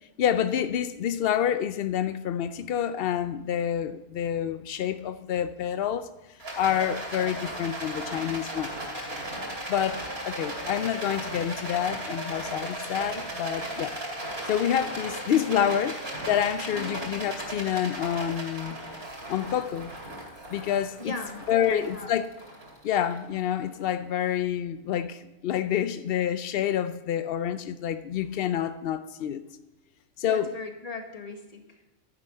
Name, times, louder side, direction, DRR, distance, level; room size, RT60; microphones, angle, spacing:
voice 1, 0.2-6.1 6.6-8.7 9.7-14.0 14.5-18.8 19.3-19.9 20.5-21.2 21.5-22.3 22.8-29.4 30.2-30.5, left 9 dB, 85° left, 0.5 m, -28 dB
Rattle, 6.4-23.8, right 1 dB, 40° right, 2.7 m, -36 dB
voice 2, 16.7-17.1 21.0-22.2 30.2-31.8, left 3 dB, 25° left, 1.3 m, -39 dB
10.5 x 9.9 x 5.5 m
omnidirectional pair, 1.6 m